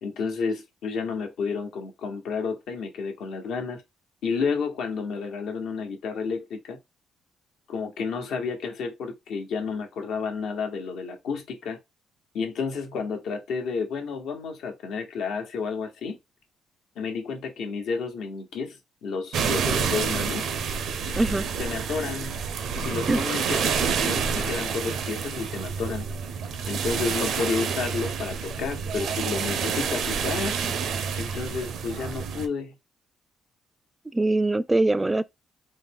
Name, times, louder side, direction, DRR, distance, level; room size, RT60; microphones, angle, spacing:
voice 1, 0.0-3.8 4.2-6.8 7.7-11.8 12.3-16.2 17.0-18.8 19.0-20.5 21.6-22.4 22.8-26.0 26.6-30.6 31.2-32.8, left 5 dB, 80° left, 1.0 m, -31 dB
sound 1, 19.3-32.5, right 6 dB, 75° right, 0.6 m, -28 dB
voice 2, 34.1-35.2, right 2 dB, 15° right, 0.3 m, -22 dB
4.0 x 2.2 x 3.4 m
cardioid pair, 90°, 0 cm